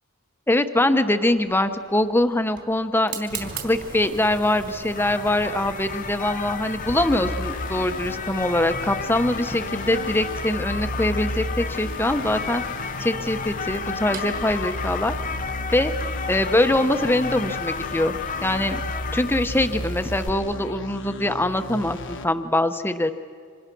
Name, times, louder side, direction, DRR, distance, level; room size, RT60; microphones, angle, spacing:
voice 1, 0.5-12.6 13.0-15.1 15.7-15.9 16.3-18.1 18.4-18.8 19.1-23.1, left 1 dB, 10° left, 9 dB, 1.0 m, -23 dB
Fire, 1.4-17.0, right 4 dB, 50° right, 4.1 m, -42 dB
sound 1, 3.3-20.3, left 6 dB, 35° left, 0.8 m, -33 dB
sound 2, 6.9-22.3, left 1 dB, 55° left, 1.4 m, -34 dB
30.0 x 26.5 x 6.2 m, 2.1 s
head